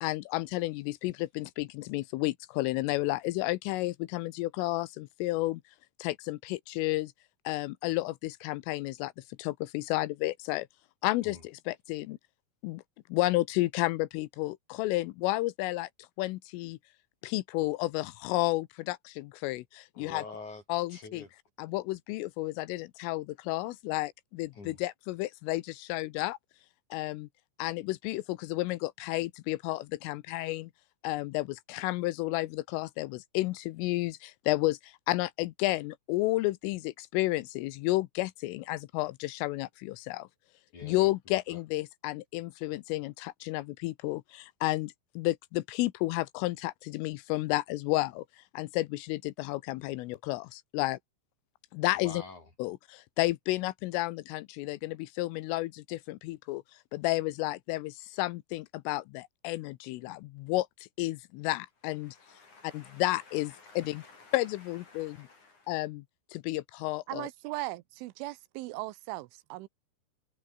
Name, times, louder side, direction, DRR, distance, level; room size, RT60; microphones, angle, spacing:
voice 1, 0.0-5.6 6.0-7.1 7.5-9.1 9.4-10.7 11.0-12.2 12.6-12.8 13.1-15.9 16.2-16.8 17.2-20.3 20.7-21.3 21.6-26.4 26.9-27.3 27.6-30.7 31.0-40.3 40.8-51.0 51.7-52.2 52.6-56.6 56.9-62.2 62.6-64.0 64.3-65.3 65.7-66.1 66.3-67.3, left 19 dB, 85° left, 3.4 m, -32 dB
voice 2, 19.9-20.6 20.9-21.3 24.5-24.8 40.7-41.6 52.0-52.4 62.0-64.4 64.9-65.7, left 3 dB, 40° left, 8.1 m, -48 dB
voice 3, 67.1-69.7, right 18 dB, 80° right, 3.1 m, -38 dB
omnidirectional pair, 5.7 m